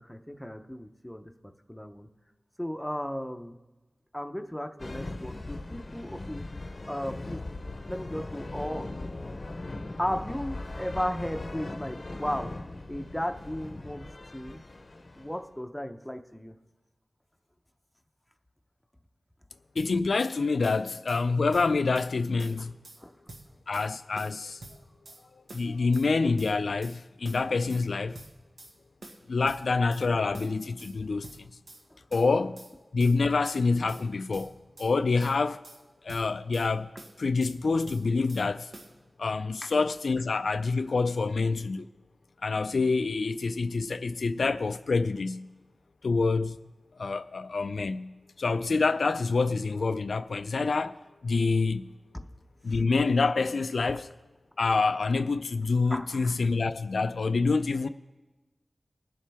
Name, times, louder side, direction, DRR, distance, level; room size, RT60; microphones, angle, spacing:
voice 1, 0.0-2.1 2.6-3.6 4.1-6.5 6.9-7.5 7.9-8.9 10.0-12.5 12.9-14.1 14.3-14.6 15.1-16.5 23.0-23.1 31.9-32.0 39.6-39.8 52.1-52.3 55.9-56.4, equal, 5° left, 0.7 m, -35 dB
sound 1, 4.8-15.5, left 2 dB, 50° left, 0.7 m, -39 dB
voice 2, 19.8-22.7 23.7-24.6 25.5-28.2 29.3-31.5 32.1-32.6 32.9-34.5 34.8-35.6 36.0-36.9 37.2-38.7 39.2-41.9 42.4-45.5 46.0-46.6 47.0-48.1 48.4-51.0 51.2-51.9 52.6-54.1 54.6-57.9, left 4 dB, 80° left, 0.3 m, -27 dB
sound 2, 19.8-20.3 20.6-21.2 21.5-22.1 22.4-23.0 23.3-23.9 24.2-25.2 25.5-26.1 26.4-27.0 27.2-27.9 28.1-28.7 29.0-30.1 30.3-30.9 31.2-31.8 32.1-32.7 33.0-33.6 33.9-34.9 35.2-35.8 36.1-36.7 37.0-37.6 37.9-38.5 38.7-38.9, right 2 dB, 90° right, 1.3 m, -47 dB
21.0 x 7.3 x 3.5 m
wide cardioid pair, 80°, 0 cm